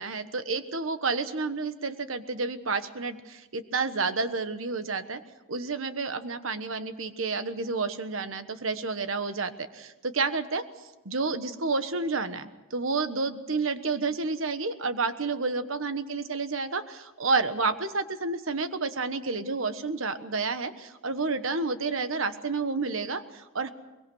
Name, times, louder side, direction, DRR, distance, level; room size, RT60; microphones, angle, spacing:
voice 1, 0.0-5.2 5.5-10.7 11.0-23.7, right 4 dB, 85° right, 10 dB, 1.3 m, -30 dB
23.5 x 21.5 x 6.3 m, 1.1 s
head